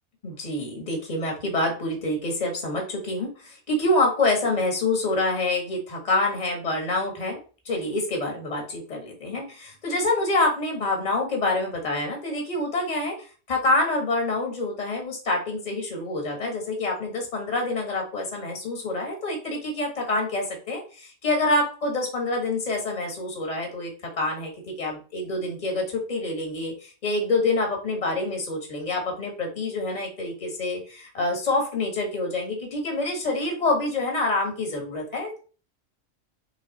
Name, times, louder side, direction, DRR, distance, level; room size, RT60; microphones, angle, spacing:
voice 1, 0.2-7.4 7.6-23.9 24.2-24.5 24.8-35.4, left 2 dB, 30° left, 1 dB, 1.3 m, -26 dB
3.9 x 3.2 x 3.9 m, 0.37 s
omnidirectional pair, 1.5 m